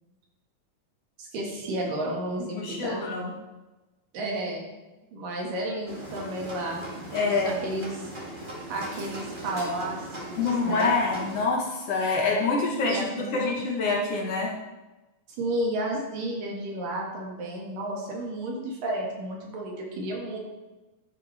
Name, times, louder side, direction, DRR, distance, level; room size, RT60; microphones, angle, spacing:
voice 1, 1.2-3.0 4.1-4.7 5.1-6.8 7.2-8.0 8.7-10.9 12.9-13.5 15.4-20.4, right 1 dB, 80° right, -1 dB, 3.6 m, -32 dB
voice 2, 2.5-3.3 7.1-7.6 10.4-14.5, left 3 dB, 60° left, -1 dB, 1.8 m, -26 dB
sound 1, 5.9-11.4, right 1 dB, 20° right, 1.5 m, -39 dB
11.5 x 9.9 x 3.4 m, 1.1 s
omnidirectional pair, 3.9 m